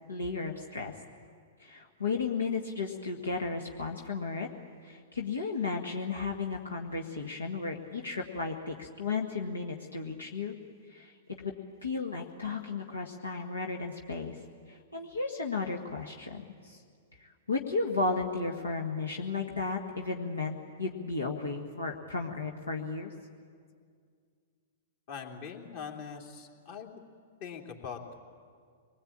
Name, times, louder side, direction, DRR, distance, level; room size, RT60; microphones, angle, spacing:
voice 1, 0.1-0.9 1.6-4.5 4.8-10.6 10.9-11.5 11.8-14.3 14.7-16.8 17.2-23.1, left 4 dB, 85° left, 1 dB, 1.6 m, -34 dB
voice 2, 25.1-26.9 27.4-28.2, left 6 dB, 55° left, 2 dB, 2.9 m, -42 dB
25.0 x 20.5 x 8.8 m, 2.1 s
hypercardioid pair, 110°, 0 cm